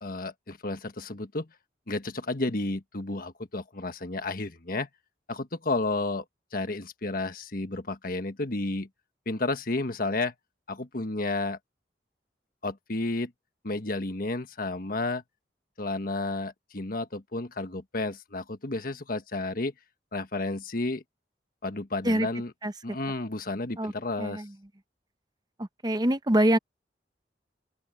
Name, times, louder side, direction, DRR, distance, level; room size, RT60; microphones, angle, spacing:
voice 1, 0.0-1.5 1.9-4.9 5.3-6.2 6.5-8.9 9.2-10.3 10.7-11.6 12.6-13.3 13.6-15.2 15.8-19.7 20.1-21.0 21.6-22.5 22.8-24.4, left 2 dB, 55° left, 1.5 m, -31 dB
voice 2, 25.6-26.6, right 1 dB, 25° right, 0.9 m, -24 dB
head